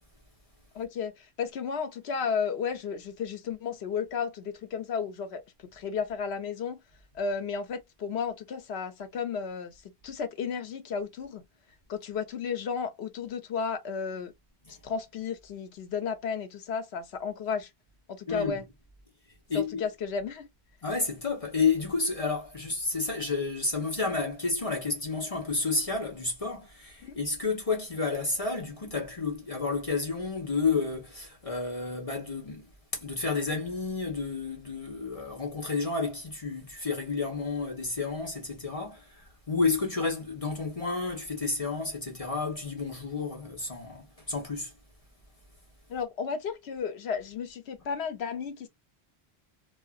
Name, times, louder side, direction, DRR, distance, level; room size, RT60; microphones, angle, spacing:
voice 1, 0.7-5.4 5.7-6.8 7.1-9.7 10.0-11.4 11.9-14.3 14.7-17.7 18.1-18.6 19.5-20.5 27.0-27.2 45.9-48.7, left 6 dB, 80° left, 1.0 m, -33 dB
voice 2, 18.3-18.6 19.5-19.8 20.8-32.7 32.9-44.7, left 4 dB, 35° left, 1.1 m, -31 dB
3.7 x 2.4 x 2.4 m
omnidirectional pair, 1.1 m